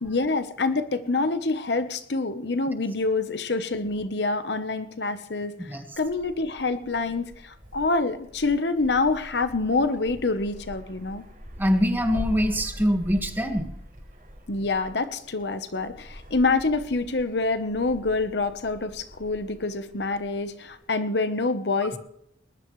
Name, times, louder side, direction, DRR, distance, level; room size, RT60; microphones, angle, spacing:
voice 1, 0.0-11.2 14.5-22.0, left 3 dB, 70° left, 10 dB, 1.0 m, -26 dB
Wind, 5.9-20.8, equal, 50° right, 5.4 m, -43 dB
voice 2, 11.6-13.7, equal, 10° right, 4 dB, 1.7 m, -23 dB
20.5 x 20.0 x 3.2 m, 0.74 s
head